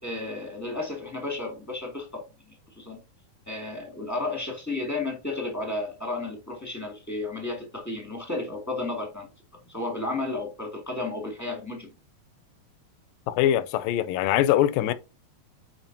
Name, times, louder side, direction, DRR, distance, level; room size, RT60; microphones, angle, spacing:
voice 1, 0.0-2.2 2.8-3.0 3.5-9.3 9.7-11.9, left 2 dB, 10° left, 0.8 m, -32 dB
voice 2, 13.3-14.9, left 12 dB, 85° left, 2.3 m, -23 dB
8.9 x 4.5 x 2.7 m
omnidirectional pair, 4.0 m